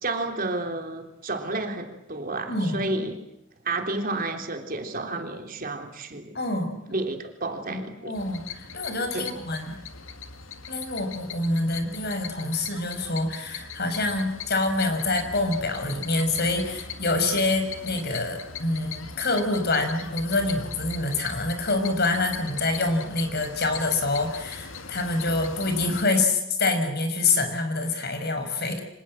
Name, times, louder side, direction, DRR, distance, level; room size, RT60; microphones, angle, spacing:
voice 1, 0.0-3.2 3.6-6.4 6.9-8.2 9.1-9.4, right 2 dB, 45° right, 4 dB, 3.5 m, -31 dB
voice 2, 2.5-2.9 6.3-6.8 7.7-9.8 10.7-28.8, left 2 dB, 55° left, 6 dB, 6.0 m, -26 dB
sound 1, 8.1-26.0, left 6 dB, 90° left, 2.2 m, -40 dB
29.0 x 26.0 x 7.7 m, 0.84 s
head